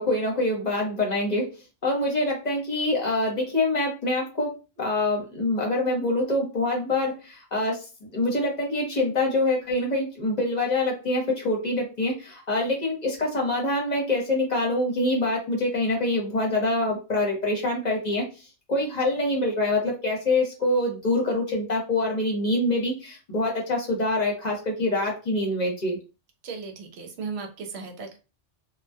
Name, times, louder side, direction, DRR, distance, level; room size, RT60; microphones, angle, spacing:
voice 1, 0.0-1.5 1.8-7.8 8.1-18.3 18.7-26.0, left 2 dB, 45° left, -1 dB, 0.8 m, -25 dB
voice 2, 26.4-28.2, right 5 dB, 75° right, 4 dB, 0.8 m, -36 dB
2.2 x 2.1 x 2.6 m, 0.31 s
omnidirectional pair, 1.1 m